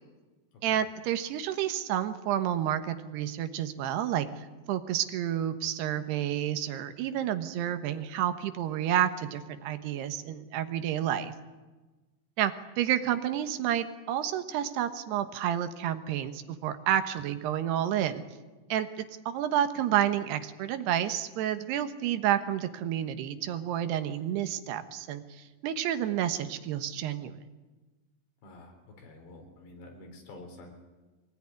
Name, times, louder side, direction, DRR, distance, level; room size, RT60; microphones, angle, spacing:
voice 1, 0.6-11.3 12.4-18.2 18.7-27.4, right 11 dB, 75° right, 9 dB, 3.2 m, -30 dB
voice 2, 28.4-30.7, left 2 dB, 85° left, 3 dB, 6.1 m, -49 dB
24.0 x 19.0 x 9.8 m, 1.2 s
omnidirectional pair, 4.9 m